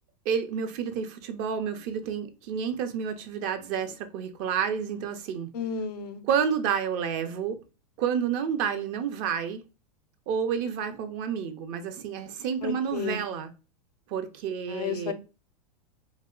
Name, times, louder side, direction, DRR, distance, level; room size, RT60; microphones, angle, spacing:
voice 1, 0.3-5.5 6.2-7.6 8.0-9.6 10.3-13.5 14.1-15.1, right 7 dB, 50° right, 0.6 m, -30 dB
voice 2, 5.5-6.2 12.6-13.2 14.7-15.1, left 6 dB, 80° left, 0.5 m, -32 dB
2.4 x 2.0 x 3.6 m
hypercardioid pair, 100°, 20 cm